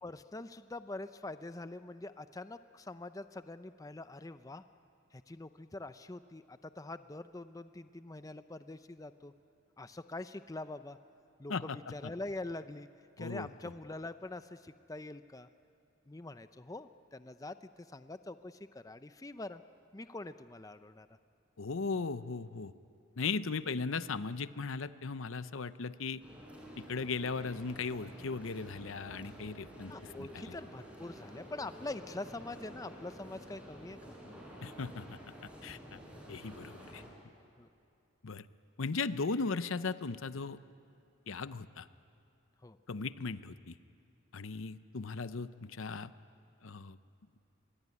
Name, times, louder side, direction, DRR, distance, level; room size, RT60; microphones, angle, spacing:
voice 1, 0.0-4.6 5.1-9.3 9.8-11.0 11.4-12.9 13.2-15.5 16.1-19.6 19.9-21.1 29.9-34.0 37.6-37.7 42.6-42.8, left 2 dB, 15° left, 11 dB, 0.5 m, -44 dB
voice 2, 21.6-22.7 23.2-26.2 26.8-29.9 30.2-30.6 34.6-35.2 35.6-36.0 36.3-37.0 38.2-38.5 38.8-40.6 41.3-41.9 42.9-43.7 44.3-46.1 46.6-47.0, left 4 dB, 80° left, 14 dB, 0.7 m, -37 dB
sound 1, 26.2-37.1, equal, 5° right, 5.0 m, -50 dB
24.0 x 22.0 x 9.8 m, 2.5 s
head